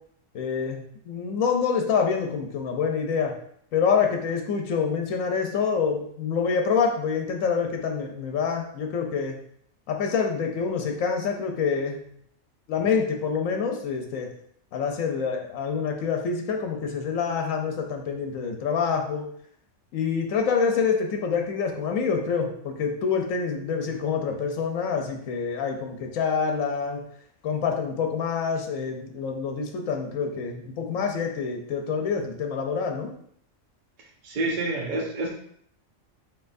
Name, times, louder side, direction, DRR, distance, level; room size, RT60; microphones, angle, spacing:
voice 1, 0.3-3.3 3.7-9.4 9.9-12.0 12.7-14.3 14.7-19.3 19.9-27.0 27.4-33.1, left 6 dB, 90° left, 3 dB, 1.1 m, -26 dB
voice 2, 34.2-35.3, right 2 dB, 50° right, -1 dB, 0.6 m, -28 dB
4.6 x 4.3 x 2.5 m, 0.65 s
omnidirectional pair, 1.4 m